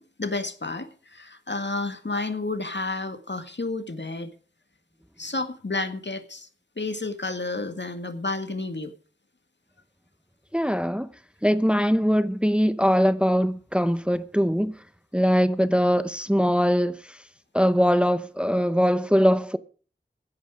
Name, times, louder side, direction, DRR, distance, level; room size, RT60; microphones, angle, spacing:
voice 1, 0.0-4.3 5.2-6.5 6.8-8.9, left 3 dB, 65° left, 1.9 m, -31 dB
voice 2, 10.5-11.1 11.4-14.7 15.1-17.2 17.5-19.6, equal, 5° right, 0.8 m, -22 dB
16.0 x 11.0 x 5.0 m
wide cardioid pair, 45°, 20 cm